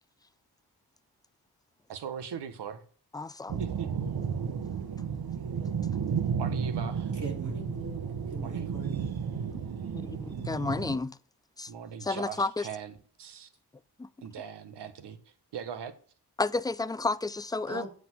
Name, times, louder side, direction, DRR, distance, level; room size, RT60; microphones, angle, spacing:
voice 1, 1.9-2.8 3.6-3.9 6.3-7.2 8.4-8.7 11.7-13.5 14.2-15.2 15.5-15.9, right 7 dB, 90° right, 1.2 m, -40 dB
voice 2, 3.1-3.6 9.5-9.6 9.9-11.2 11.6-11.7 12.0-12.7 14.0-14.1 16.4-17.9, left 3 dB, 10° left, 0.4 m, -31 dB
sound 1, 3.5-11.0, right 6 dB, 65° right, 1.1 m, -33 dB
voice 3, 7.2-8.0 8.3-9.1 17.7-17.9, right 2 dB, 50° right, 3.6 m, -40 dB
8.0 x 5.2 x 6.1 m
cardioid pair, 75°, 40 cm